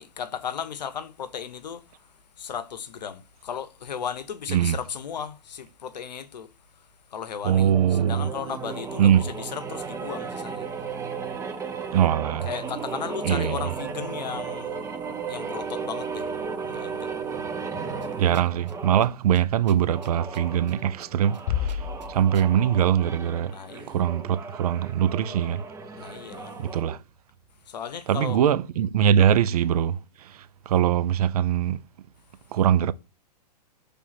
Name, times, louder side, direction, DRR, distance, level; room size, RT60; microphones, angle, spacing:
voice 1, 0.0-10.7 11.3-11.4 12.4-16.4 16.6-17.2 23.5-24.0 26.0-26.6 27.6-28.4 29.2-29.3, left 7 dB, 80° left, 0.8 m, -36 dB
voice 2, 7.4-8.3 9.0-9.2 11.9-12.5 13.2-13.6 18.2-23.5 23.9-25.6 26.6-27.0 28.1-31.8 32.5-32.9, right 10 dB, 65° right, 0.5 m, -22 dB
Choir Tape Chop, 7.5-19.2 19.8-27.0, right 5 dB, 15° right, 0.8 m, -35 dB
sound 1, 18.0-18.8 19.0-19.1 19.3-20.7 21.0-21.4 21.7-22.5, right 6 dB, 90° right, 0.9 m, -48 dB
Bass drum, 21.5-22.9, left 9 dB, 50° left, 0.4 m, -30 dB
6.1 x 3.5 x 5.8 m
hypercardioid pair, 120°, 21 cm